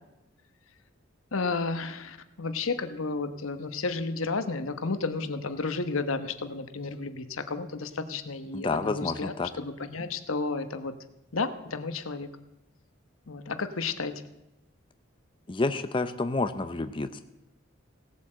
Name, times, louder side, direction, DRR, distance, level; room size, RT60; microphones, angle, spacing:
voice 1, 1.3-10.9 11.3-12.3 13.3-14.2, left 4 dB, 85° left, 10 dB, 1.1 m, -32 dB
voice 2, 8.5-9.5 15.5-17.2, left 3 dB, 25° left, 9 dB, 0.6 m, -29 dB
17.0 x 8.3 x 7.5 m, 0.95 s
head